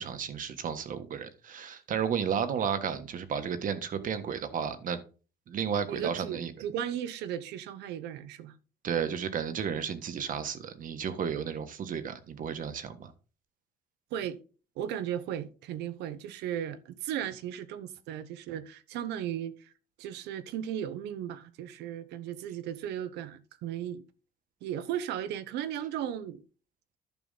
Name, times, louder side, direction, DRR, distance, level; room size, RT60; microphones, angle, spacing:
voice 1, 0.0-5.0 5.5-6.5 8.8-13.1, right 7 dB, 50° right, 1.5 m, -33 dB
voice 2, 5.9-8.6 14.1-14.4 14.8-19.7 20.0-24.0 24.6-26.4, right 10 dB, 85° right, 1.0 m, -36 dB
11.0 x 6.1 x 4.0 m
cardioid pair, 110°, 17 cm